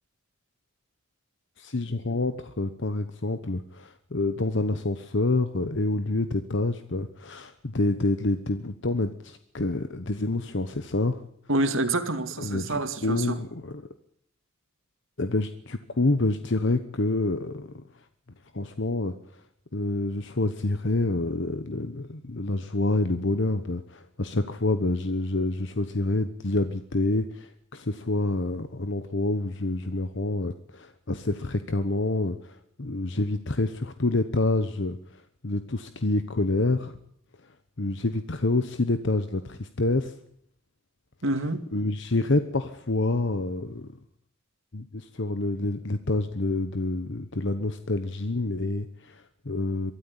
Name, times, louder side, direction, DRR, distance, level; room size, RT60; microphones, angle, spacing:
voice 1, 1.6-11.2 12.4-13.9 15.2-17.7 18.5-19.1 19.7-35.0 35.4-37.0 37.8-40.1 41.7-43.9 44.7-49.9, left 2 dB, 60° left, 1.1 m, -27 dB
voice 2, 11.5-13.4 41.2-41.6, right 2 dB, 70° right, 2.3 m, -27 dB
23.5 x 13.0 x 9.9 m
head